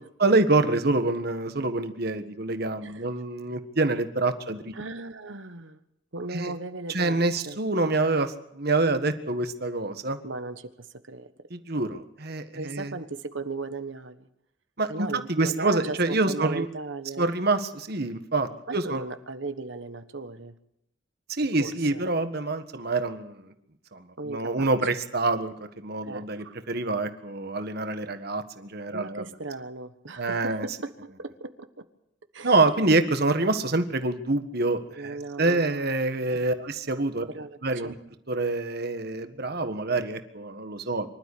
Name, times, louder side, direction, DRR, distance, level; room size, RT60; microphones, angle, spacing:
voice 1, 0.2-4.7 6.3-6.5 6.9-10.2 11.5-12.9 14.8-16.6 17.2-19.0 21.3-23.4 23.9-24.0 24.3-29.2 30.2-30.7 32.4-37.3 37.6-37.9 38.3-41.1, right 2 dB, 55° right, 8 dB, 1.6 m, -26 dB
voice 2, 4.7-5.8 6.1-7.6 10.2-11.3 12.6-14.3 14.9-17.3 18.7-20.6 21.6-22.0 24.2-24.7 26.0-26.6 28.9-31.9 32.3-32.6 34.9-35.9 36.3-36.4 37.2-38.0, right 3 dB, 80° right, 10 dB, 1.4 m, -37 dB
25.0 x 12.5 x 8.5 m, 0.77 s
head